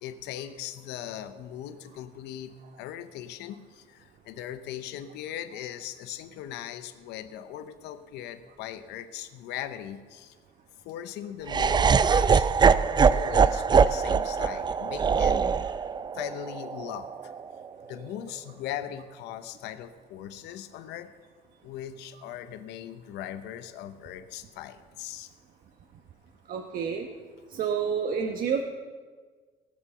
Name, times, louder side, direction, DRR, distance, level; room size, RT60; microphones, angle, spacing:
voice 1, 0.0-10.4 10.8-15.8 16.1-17.3 17.9-21.1 21.6-25.3, left 11 dB, 90° left, 11 dB, 0.7 m, -39 dB
Laughter, 11.5-17.6, right 6 dB, 25° right, 0.4 m, -23 dB
voice 2, 26.5-27.1 27.5-28.6, right 6 dB, 60° right, 3 dB, 1.0 m, -29 dB
18.0 x 6.2 x 6.8 m, 1.5 s
cardioid pair, 110°, 17 cm